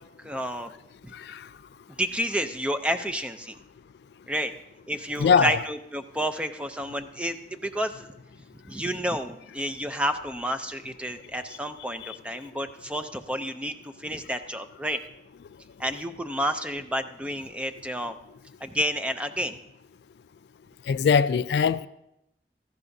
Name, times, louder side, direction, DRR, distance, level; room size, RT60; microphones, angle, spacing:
voice 1, 0.2-0.7 1.0-1.1 1.9-3.6 4.3-4.5 4.9-8.1 8.7-15.0 15.8-18.1 18.6-19.6, equal, 5° right, 0.5 m, -30 dB
voice 2, 1.1-1.5 5.2-5.6 12.0-12.2 20.9-21.9, left 6 dB, 65° left, 0.3 m, -22 dB
17.0 x 13.5 x 2.7 m
head